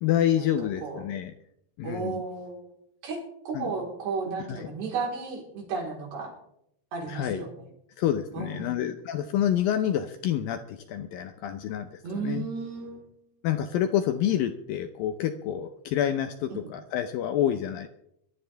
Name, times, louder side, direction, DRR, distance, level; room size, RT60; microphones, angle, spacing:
voice 1, 0.0-1.3 1.8-2.2 3.5-3.7 4.5-4.7 7.1-7.4 8.0-12.5 13.4-17.9, left 10 dB, 80° left, 8 dB, 2.1 m, -28 dB
voice 2, 1.8-2.6 3.0-3.2 3.5-6.3 6.9-7.5 8.3-8.8 12.0-13.2 16.5-16.6, right 4 dB, 70° right, -1 dB, 6.0 m, -33 dB
22.5 x 13.0 x 3.4 m, 0.77 s
omnidirectional pair, 4.8 m